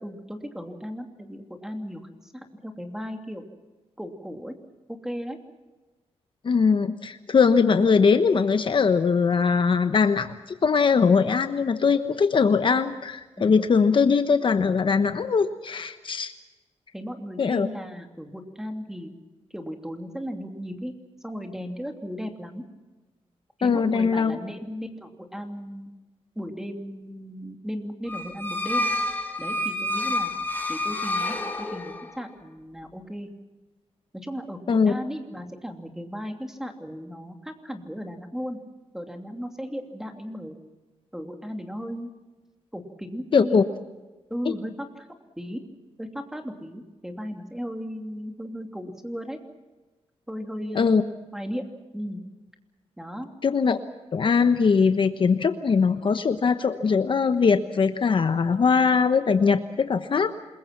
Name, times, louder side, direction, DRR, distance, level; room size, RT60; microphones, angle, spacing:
voice 1, 0.0-3.4 4.0-4.5 4.9-5.4 13.4-13.6 16.9-19.1 19.5-20.9 21.2-22.6 23.6-25.9 26.3-28.9 29.4-30.3 30.7-33.3 34.1-38.6 38.9-40.6 41.1-42.1 42.7-43.6 44.3-45.1 45.4-45.6 46.0-49.4 50.3-51.1 51.3-51.6 51.9-52.2 53.0-53.3, equal, 5° right, 4 dB, 2.9 m, -36 dB
voice 2, 6.4-16.3 17.4-17.7 23.6-24.4 34.7-34.9 43.3-43.6 50.7-51.0 53.4-53.8 54.1-60.3, left 5 dB, 50° left, 9 dB, 1.1 m, -21 dB
sound 1, 28.1-32.2, left 1 dB, 15° left, 3.5 m, -28 dB
27.5 x 22.0 x 6.0 m, 1.2 s
wide cardioid pair, 125°, 11 cm